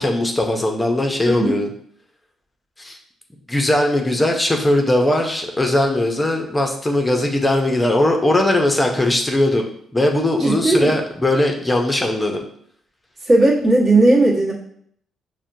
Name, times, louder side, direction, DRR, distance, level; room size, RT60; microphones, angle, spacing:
voice 1, 0.0-1.7 2.8-3.0 3.5-9.7 9.9-12.4, left 1 dB, 15° left, 2 dB, 0.7 m, -19 dB
voice 2, 1.3-1.6 10.4-10.9 13.3-14.5, right 2 dB, 35° right, -5 dB, 1.3 m, -16 dB
5.9 x 2.2 x 2.7 m, 0.66 s
cardioid pair, 90°, 0 cm